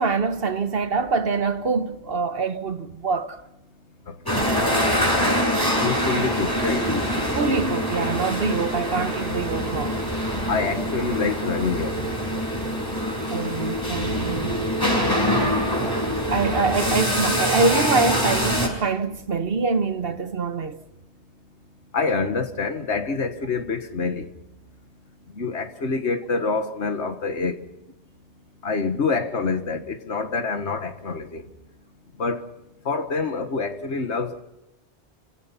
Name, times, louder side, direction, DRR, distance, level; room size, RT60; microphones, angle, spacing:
voice 1, 0.0-3.4 7.3-10.0 13.3-14.6 16.2-20.8, right 4 dB, 60° right, 1.4 m, -25 dB
sound 1, 4.3-18.7, equal, 20° left, 5.8 m, -24 dB
voice 2, 5.8-6.9 8.4-8.6 10.5-12.0 21.9-24.2 25.4-27.6 28.6-31.4 32.2-32.4 32.8-34.4, left 4 dB, 85° left, 1.8 m, -26 dB
28.0 x 16.5 x 5.8 m
omnidirectional pair, 1.1 m